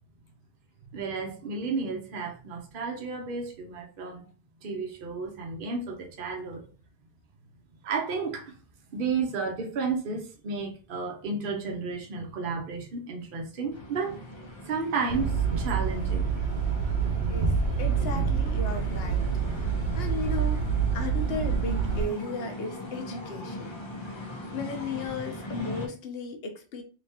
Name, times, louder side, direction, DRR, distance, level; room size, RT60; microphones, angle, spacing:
voice 1, 0.9-4.3 4.6-6.6 7.8-8.6 8.9-14.2 14.7-16.2, right 4 dB, 55° right, 0.8 m, -32 dB
sound 1, 13.7-25.9, equal, 30° left, 0.6 m, -40 dB
sound 2, 15.1-22.0, right 6 dB, 70° right, 1.1 m, -27 dB
voice 2, 17.3-20.6 20.9-23.8 24.0-26.8, left 3 dB, 65° left, 0.9 m, -36 dB
3.4 x 2.9 x 2.7 m
omnidirectional pair, 1.1 m